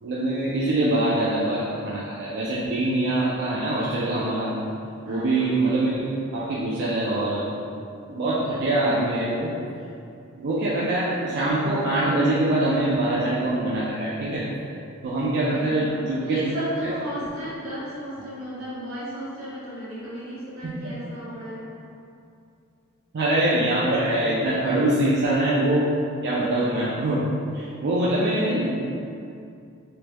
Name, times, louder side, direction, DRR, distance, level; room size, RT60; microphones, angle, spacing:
voice 1, 0.0-4.5 5.1-6.0 6.3-7.5 8.1-9.5 10.3-14.4 15.0-17.0 20.6-20.7 23.1-25.9 26.2-27.2 27.5-28.7, right 1 dB, 55° right, -8 dB, 0.4 m, -24 dB
voice 2, 5.0-5.6 15.5-21.6 28.1-28.7, equal, 85° right, -9 dB, 1.2 m, -35 dB
3.3 x 3.0 x 2.2 m, 2.6 s
head